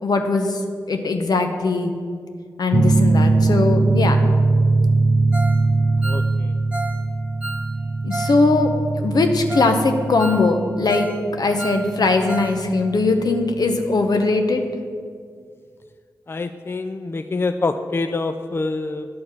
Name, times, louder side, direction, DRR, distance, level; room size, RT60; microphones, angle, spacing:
voice 1, 0.0-0.6 0.9-1.9 2.6-4.2 8.0-11.1 11.3-14.6, left 3 dB, 70° left, 6 dB, 0.9 m, -20 dB
sound 1, 2.7-13.9, right 3 dB, 35° right, 0.5 m, -21 dB
Ringtone, 5.3-5.6 5.9-8.4 8.7-8.8 9.2-9.3 9.5-9.8 10.0-11.2 11.4-12.6 12.8-12.9 13.4-13.5, right 2 dB, 15° right, 1.2 m, -31 dB
voice 2, 16.3-19.1, left 3 dB, 35° left, 9 dB, 0.4 m, -25 dB
9.5 x 4.3 x 7.1 m, 2.1 s
cardioid pair, 40°, 7 cm